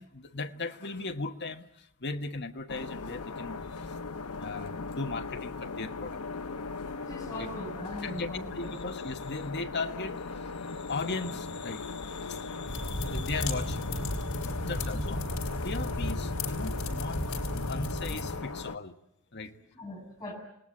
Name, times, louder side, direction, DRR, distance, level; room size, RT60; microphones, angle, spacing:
voice 1, 0.0-3.9 4.4-6.2 7.4-7.5 8.0-15.2 15.6-19.0 19.3-19.6, left 3 dB, 50° left, 1.3 m, -38 dB
sound 1, 2.7-18.8, left 4 dB, 90° left, 0.9 m, -39 dB
voice 2, 7.0-8.8 19.8-20.3, left 1 dB, 15° left, 6.7 m, -40 dB
sound 2, 12.7-18.4, left 1 dB, 65° left, 3.5 m, -33 dB
28.5 x 18.5 x 8.6 m
head